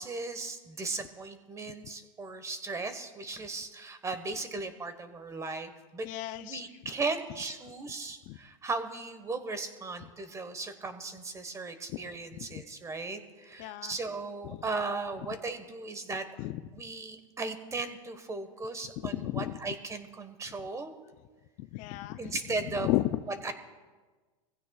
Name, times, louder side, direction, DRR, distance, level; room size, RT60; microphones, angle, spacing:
voice 1, 0.0-6.1 6.4-16.2 16.7-20.9 22.2-22.9 23.4-23.5, right 3 dB, 15° right, 9 dB, 1.3 m, -37 dB
voice 2, 6.0-6.6 8.3-8.4 12.4-12.6 13.6-14.0 14.5-14.6 16.4-16.6 19.0-19.5 21.6-22.3 22.8-23.2, left 16 dB, 45° left, 12 dB, 0.5 m, -33 dB
23.5 x 15.5 x 2.4 m, 1.3 s
hypercardioid pair, 120°, 17 cm